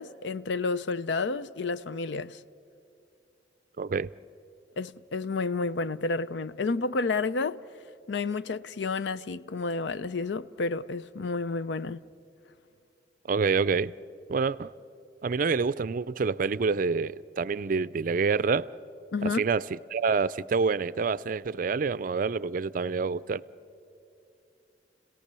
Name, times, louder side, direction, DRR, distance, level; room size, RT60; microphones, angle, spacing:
voice 1, 0.0-2.4 4.8-7.6 8.1-12.0 19.1-19.4, left 3 dB, 85° left, 0.5 m, -30 dB
voice 2, 3.8-4.1 13.3-13.9 14.3-14.7 15.2-18.7 19.2-23.4, right 4 dB, 50° right, 0.4 m, -27 dB
29.5 x 17.5 x 6.8 m
head